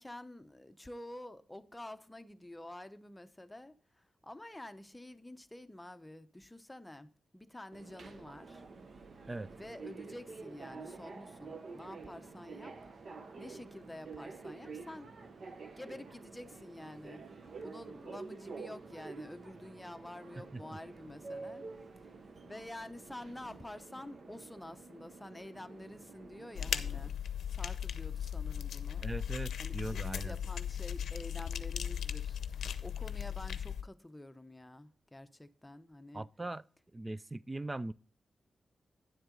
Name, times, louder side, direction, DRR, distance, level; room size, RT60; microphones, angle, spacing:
voice 1, 0.0-8.6 9.6-12.9 13.4-15.1 15.8-17.2 17.6-21.6 22.0-22.1 22.4-27.1 27.5-29.1 29.6-36.2, left 1 dB, 10° left, 0.7 m, -49 dB
Subway metro underground, 7.7-27.1, right 4 dB, 55° right, 1.0 m, -49 dB
sound 1, 26.6-33.8, left 8 dB, 85° left, 0.6 m, -37 dB
voice 2, 29.0-30.4 36.1-36.6 36.9-37.9, right 2 dB, 20° right, 0.4 m, -40 dB
10.0 x 7.7 x 3.8 m
cardioid pair, 80°, 0 cm